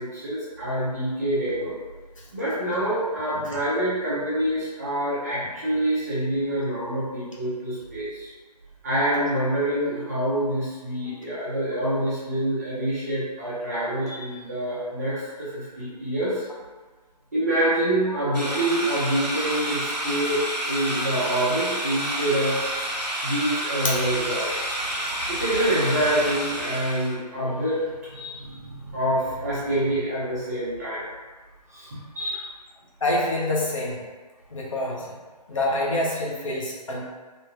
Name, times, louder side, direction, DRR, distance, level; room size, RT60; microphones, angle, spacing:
voice 1, 0.0-1.7 2.3-8.3 8.8-16.4 17.3-22.7 23.2-24.5 25.3-31.0 31.7-32.5, right 1 dB, 25° right, -9 dB, 0.6 m, -26 dB
sound 1, 18.3-27.2, right 1 dB, 75° right, 1.0 m, -29 dB
voice 2, 33.0-34.0 34.5-35.0 35.5-37.0, left 1 dB, 50° left, -3 dB, 0.8 m, -26 dB
3.6 x 2.7 x 2.5 m, 1.4 s
figure-of-eight pair, 150°, 21 cm